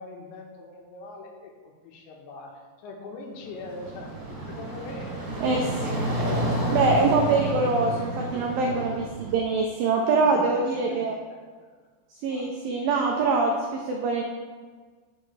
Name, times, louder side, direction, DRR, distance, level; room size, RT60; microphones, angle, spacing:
voice 1, 0.0-5.5 6.2-7.5 8.5-8.9 10.1-11.9 12.3-12.5 12.8-12.9, left 3 dB, 85° left, 1 dB, 3.5 m, -42 dB
sound 1, 3.4-9.4, right 1 dB, 45° right, 3.9 m, -30 dB
voice 2, 5.4-5.9 6.7-11.2 12.2-14.2, right 3 dB, 85° right, 1 dB, 2.0 m, -24 dB
11.5 x 7.2 x 3.3 m, 1.5 s
omnidirectional pair, 5.1 m